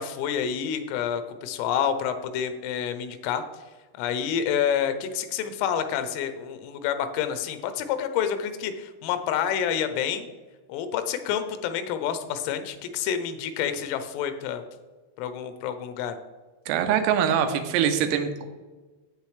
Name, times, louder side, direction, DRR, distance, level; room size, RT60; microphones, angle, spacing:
voice 1, 0.0-3.4 4.0-10.3 10.7-14.6 15.2-16.2, left 8 dB, 85° left, 9 dB, 3.4 m, -28 dB
voice 2, 16.7-18.5, right 8 dB, 85° right, 8 dB, 3.4 m, -23 dB
10.0 x 8.3 x 3.3 m, 1.3 s
omnidirectional pair, 5.8 m